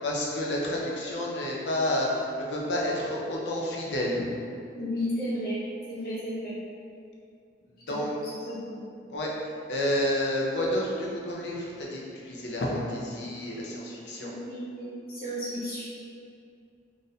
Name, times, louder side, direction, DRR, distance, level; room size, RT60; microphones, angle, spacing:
voice 1, 0.0-4.3 7.7-8.2 9.1-14.3, left 1 dB, 70° left, -3 dB, 0.6 m, -30 dB
voice 2, 4.8-6.5 7.9-9.1 14.2-15.8, equal, 50° left, -9 dB, 0.9 m, -34 dB
2.5 x 2.5 x 4.1 m, 2.4 s
head